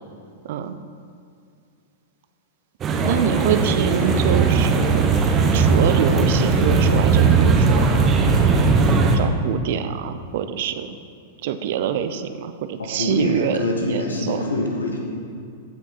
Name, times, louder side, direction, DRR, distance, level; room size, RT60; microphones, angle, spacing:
voice 1, 0.4-0.8 3.0-5.1 5.5-8.3 9.0-10.9 11.4-14.4, right 8 dB, 50° right, 10 dB, 0.5 m, -25 dB
sound 1, 2.8-9.2, right 4 dB, 25° right, 0.9 m, -18 dB
voice 2, 12.8-15.0, left 2 dB, 75° left, 1 dB, 1.6 m, -25 dB
15.0 x 6.1 x 4.3 m, 2.4 s
figure-of-eight pair, 100°, 0 cm